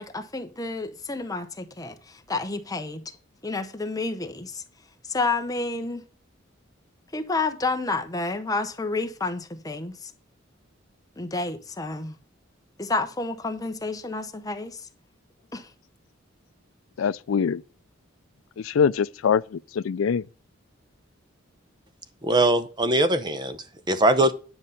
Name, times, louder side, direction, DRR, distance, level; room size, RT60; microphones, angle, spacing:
voice 1, 0.0-3.0 3.4-4.6 5.0-6.0 7.1-10.1 11.2-12.2 12.8-14.9 15.5-15.7, left 3 dB, 20° left, 0.8 m, -30 dB
voice 2, 17.0-17.6 18.6-20.3, left 6 dB, 85° left, 0.4 m, -24 dB
voice 3, 22.2-24.3, right 1 dB, 20° right, 0.8 m, -22 dB
9.9 x 5.5 x 5.2 m
head